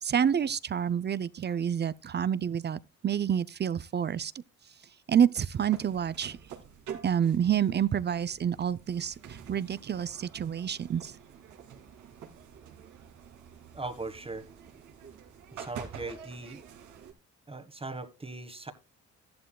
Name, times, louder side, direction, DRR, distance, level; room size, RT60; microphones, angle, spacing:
voice 1, 0.0-4.4 5.1-6.4 7.0-11.1, right 8 dB, 35° right, 0.5 m, -28 dB
sound 1, 5.5-17.1, right 8 dB, 85° right, 2.4 m, -47 dB
voice 2, 13.7-14.4 15.5-16.6 17.5-18.7, right 2 dB, 20° right, 1.4 m, -39 dB
13.5 x 11.0 x 2.3 m
cardioid pair, 90°, 30 cm